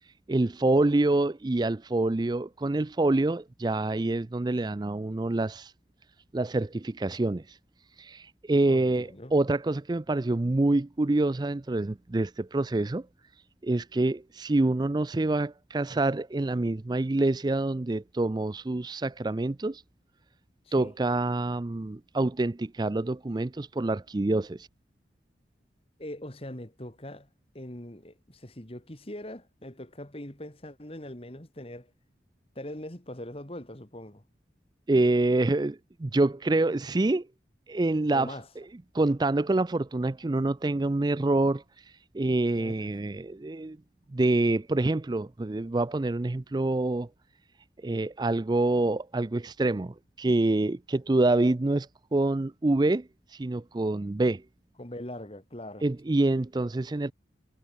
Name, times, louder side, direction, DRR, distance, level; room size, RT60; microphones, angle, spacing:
voice 1, 0.3-5.7 6.3-7.6 8.0-13.1 13.6-19.8 20.7-24.7 34.9-37.3 37.7-38.4 38.9-41.6 42.1-43.8 44.1-47.1 47.8-54.4 55.8-57.1, right 2 dB, 25° right, 0.4 m, -26 dB
voice 2, 8.7-9.3 20.7-20.9 26.0-27.3 27.5-31.9 32.5-34.2 38.1-38.5 42.5-42.9 54.8-55.9, left 1 dB, 30° left, 2.7 m, -41 dB
head